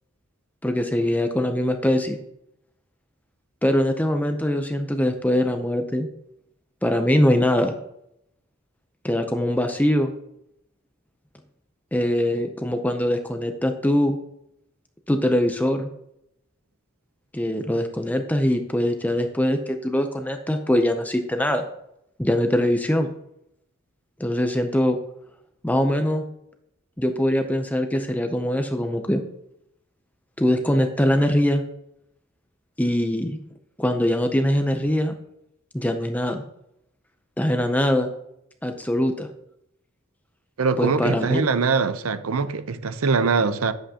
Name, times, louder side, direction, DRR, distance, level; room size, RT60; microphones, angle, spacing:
voice 1, 0.6-2.2 3.6-6.1 6.8-7.7 9.0-10.1 11.9-14.2 15.1-15.9 17.3-21.6 22.2-23.1 24.2-25.0 25.6-26.2 27.0-29.2 30.4-31.6 32.8-33.4 33.8-35.1 35.7-36.4 37.4-38.1 38.6-39.3 40.8-41.4, left 1 dB, 10° left, 0.5 m, -22 dB
voice 2, 40.6-43.7, right 4 dB, 85° right, 0.6 m, -22 dB
9.9 x 7.9 x 2.8 m
head